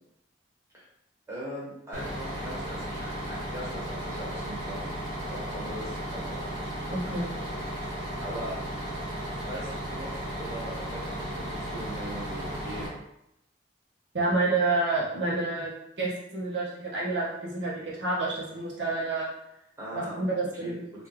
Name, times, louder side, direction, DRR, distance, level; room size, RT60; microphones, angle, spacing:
voice 1, 1.3-4.8 5.3-6.5 8.2-8.7 9.3-12.9 19.8-20.7, equal, 15° right, -8 dB, 1.2 m, -40 dB
Bus, 1.9-12.9, equal, 50° right, 1.4 m, -35 dB
voice 2, 6.9-7.3 14.1-15.7 16.0-19.3 19.9-20.9, right 2 dB, 75° right, -5 dB, 1.0 m, -29 dB
3.4 x 2.6 x 3.3 m, 0.82 s
head